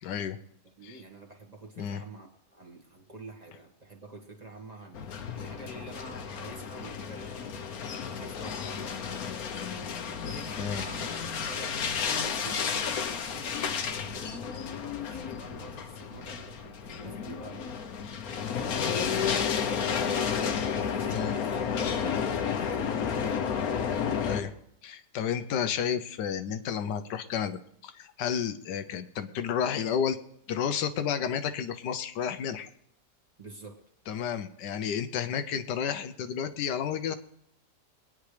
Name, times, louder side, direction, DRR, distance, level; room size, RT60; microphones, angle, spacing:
voice 1, 0.0-0.4 0.8-1.0 1.8-2.0 10.6-10.8 21.1-21.3 24.2-24.5 24.8-30.2 30.5-32.7 34.1-37.1, left 8 dB, 85° left, 10 dB, 1.4 m, -31 dB
voice 2, 0.6-9.2 10.2-11.1 11.4-17.6 18.7-20.1 20.9-23.4 33.4-33.8, right 3 dB, 25° right, 1 dB, 1.5 m, -47 dB
sound 1, 4.9-24.4, left 7 dB, 65° left, 1.3 m, -32 dB
22.5 x 9.7 x 3.3 m, 0.72 s
omnidirectional pair, 1.8 m